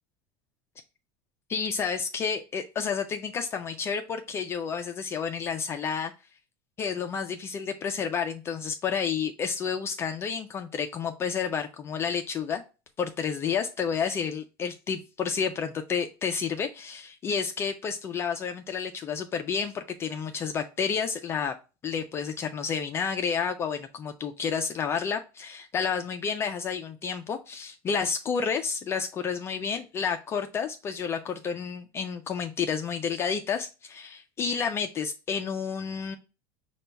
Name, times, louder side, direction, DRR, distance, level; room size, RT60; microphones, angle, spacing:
voice 1, 1.5-6.1 6.8-12.6 13.0-21.6 21.8-36.2, left 6 dB, 25° left, 5 dB, 0.3 m, -30 dB
5.4 x 2.3 x 4.3 m, 0.31 s
supercardioid pair, 155°, 11 cm